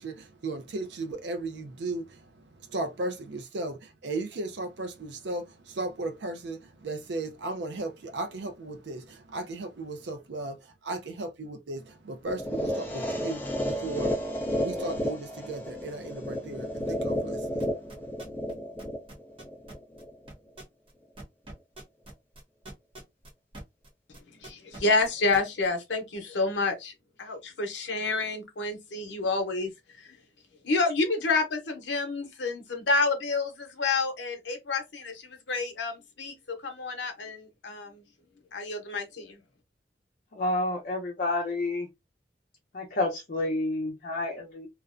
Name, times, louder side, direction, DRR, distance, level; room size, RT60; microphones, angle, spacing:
voice 1, 0.0-18.0, right 2 dB, 75° right, 0.5 m, -36 dB
sound 1, 12.3-20.3, equal, 10° left, 0.6 m, -32 dB
sound 2, 17.6-18.5 18.8-23.9 24.1-25.7, right 1 dB, 30° right, 0.8 m, -45 dB
voice 2, 24.4-26.9 27.2-30.1 30.6-38.0 38.5-39.4, left 3 dB, 90° left, 0.7 m, -29 dB
voice 3, 40.3-41.9 42.7-44.7, left 2 dB, 50° left, 0.6 m, -29 dB
2.4 x 2.1 x 2.4 m
head